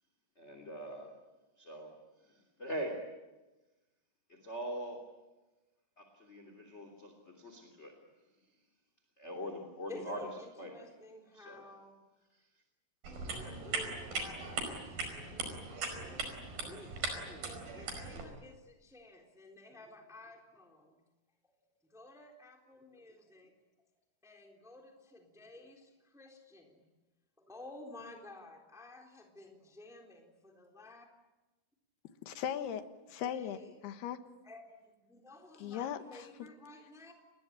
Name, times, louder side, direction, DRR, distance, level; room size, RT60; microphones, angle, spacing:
voice 1, 0.4-1.1 1.6-1.9 2.2-3.0 4.3-5.0 6.0-8.0 9.2-10.3 10.6-10.9 11.3-11.6, equal, 20° left, 5 dB, 2.9 m, -42 dB
voice 2, 9.9-12.0 13.3-14.6 14.8-16.1 16.6-21.0 21.9-23.5 24.2-26.8 27.4-31.1 32.5-32.8 33.2-33.7 34.4-37.1, left 2 dB, ahead, 2 dB, 3.2 m, -53 dB
sound 1, 13.0-18.2, right 3 dB, 65° right, 6.7 m, -39 dB
voice 3, 32.2-33.6 33.8-34.2 35.6-36.5, left 9 dB, 90° left, 9 dB, 3.4 m, -38 dB
30.0 x 21.0 x 8.9 m, 1.1 s
omnidirectional pair, 4.5 m